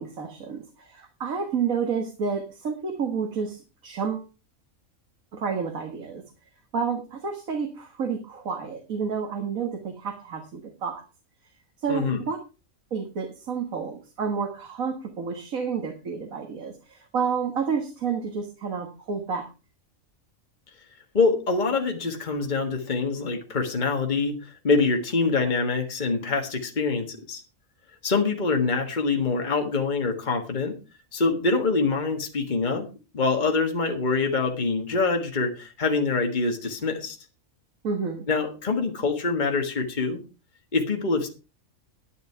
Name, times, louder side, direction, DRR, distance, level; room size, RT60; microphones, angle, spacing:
voice 1, 0.0-4.3 5.3-6.2 6.7-11.0 11.8-12.4 12.9-19.4 37.8-38.3, right 6 dB, 80° right, 4 dB, 2.0 m, -30 dB
voice 2, 11.9-12.2 21.1-27.4 28.0-30.7 31.1-32.9 33.1-37.2 38.3-40.2 40.7-41.3, left 4 dB, 35° left, 3 dB, 1.7 m, -25 dB
10.5 x 10.5 x 4.5 m, 0.32 s
omnidirectional pair, 1.4 m